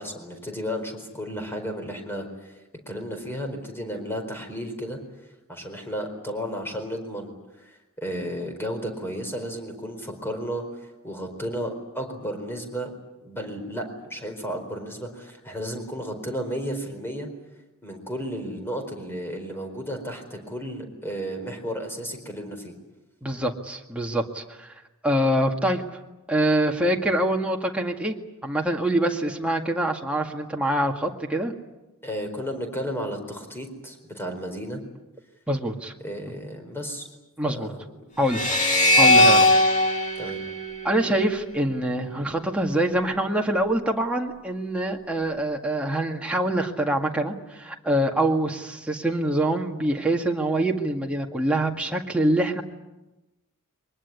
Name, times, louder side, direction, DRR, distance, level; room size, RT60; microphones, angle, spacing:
voice 1, 0.0-2.5 2.9-5.0 5.5-12.9 13.2-17.3 17.8-22.7 32.0-34.8 36.0-37.1 37.4-37.8 40.2-40.4, equal, 10° left, 4 dB, 4.5 m, -33 dB
voice 2, 23.2-24.7 25.0-25.8 26.3-28.2 28.4-31.5 35.5-35.9 37.4-37.7 38.2-38.4 39.0-39.5 40.8-52.6, right 1 dB, 5° right, 1 dB, 1.9 m, -25 dB
sound 1, 38.3-41.6, left 1 dB, 35° left, 3.3 m, -20 dB
23.5 x 20.0 x 9.7 m, 1.0 s
head